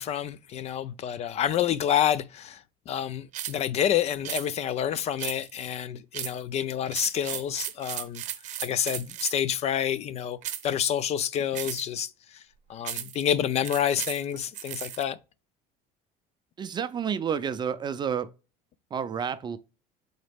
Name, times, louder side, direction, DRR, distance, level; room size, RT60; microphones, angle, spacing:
voice 1, 0.0-2.6 2.9-8.2 8.6-10.4 10.6-12.1 12.7-15.2, left 9 dB, 40° left, 0.4 m, -28 dB
sound 1, 3.3-3.6 4.2-4.5 5.2-5.6 6.1-6.4 6.9-9.5 10.4-10.7 11.5-12.0 12.8-13.2 13.6-15.0, right 11 dB, 45° right, 0.8 m, -35 dB
voice 2, 16.6-18.3 18.9-19.6, right 7 dB, 25° right, 0.4 m, -30 dB
7.4 x 4.0 x 3.4 m
cardioid pair, 140°, 18 cm